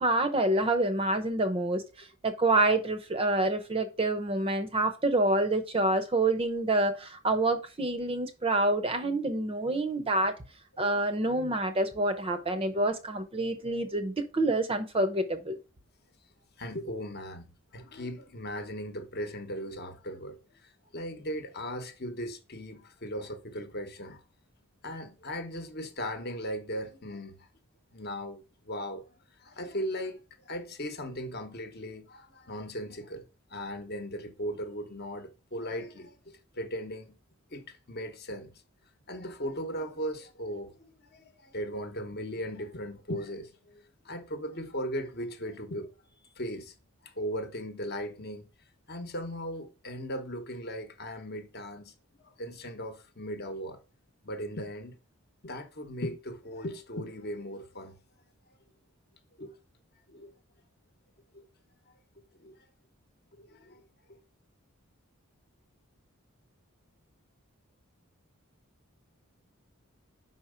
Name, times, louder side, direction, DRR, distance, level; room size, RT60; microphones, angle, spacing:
voice 1, 0.0-10.3 10.8-15.6, right 2 dB, 25° right, 0.6 m, -27 dB
voice 2, 16.6-24.2 24.8-27.5 27.9-37.2 37.5-38.6 39.1-45.9 46.4-46.7 47.0-48.5 48.9-51.9 52.2-53.8 54.2-55.0 55.4-58.0 59.4-59.6 60.1-60.3 61.3-61.4 62.3-62.6 63.3-64.2, equal, 45° left, 0.9 m, -38 dB
5.4 x 4.3 x 4.9 m
head